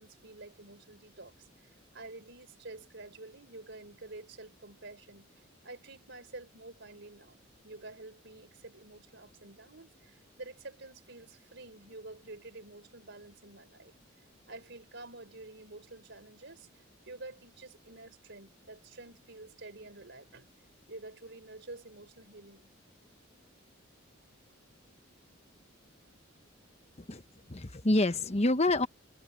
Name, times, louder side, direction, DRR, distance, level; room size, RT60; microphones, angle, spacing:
voice 1, 0.0-5.3 5.6-13.9 14.5-20.5 20.9-22.7, right 2 dB, 60° right, 4.6 m, -49 dB
voice 2, 27.5-28.9, left 2 dB, 30° left, 1.1 m, -27 dB
head